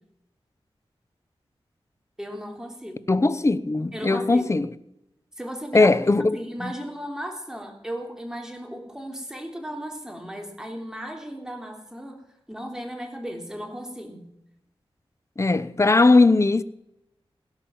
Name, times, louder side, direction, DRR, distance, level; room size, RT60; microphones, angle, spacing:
voice 1, 2.2-3.1 3.9-4.5 5.4-12.2 12.5-14.3, equal, 5° right, 3.2 m, -36 dB
voice 2, 3.1-4.7 5.7-6.7 15.4-16.6, left 3 dB, 30° left, 0.8 m, -19 dB
17.0 x 11.0 x 7.2 m
wide cardioid pair, 75°, 10 cm